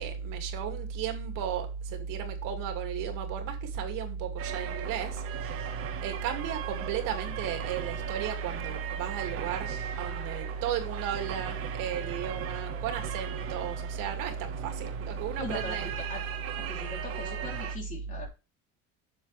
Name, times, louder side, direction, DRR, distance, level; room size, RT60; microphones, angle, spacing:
voice 1, 0.0-5.7 6.0-15.9, right 7 dB, 80° right, 2.5 m, -33 dB
sound 1, 4.4-17.7, right 10 dB, 45° right, 1.5 m, -39 dB
voice 2, 15.4-16.2 16.7-18.3, left 2 dB, 25° left, 3.2 m, -40 dB
7.8 x 7.3 x 3.3 m
cardioid pair, 175°, 32 cm